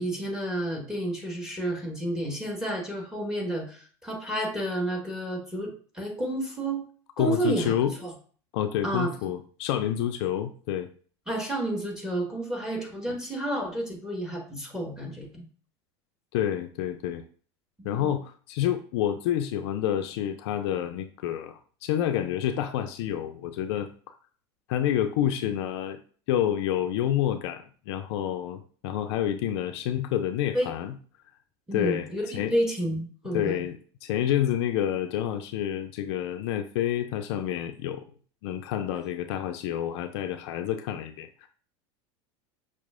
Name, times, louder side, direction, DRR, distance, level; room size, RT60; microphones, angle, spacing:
voice 1, 0.0-6.8 7.2-7.7 8.0-8.1 8.8-9.1 11.3-15.5 17.8-18.1 30.5-30.7 31.7-33.6, right 1 dB, 5° right, 1 dB, 1.3 m, -30 dB
voice 2, 7.2-7.9 8.5-10.9 13.1-13.2 16.3-17.2 17.8-23.9 24.7-26.0 26.3-30.9 31.7-32.5 33.3-33.8 34.0-38.0 38.4-41.5, left 11 dB, 65° left, 8 dB, 0.4 m, -28 dB
5.8 x 2.4 x 2.4 m, 0.43 s
hypercardioid pair, 90°, 15 cm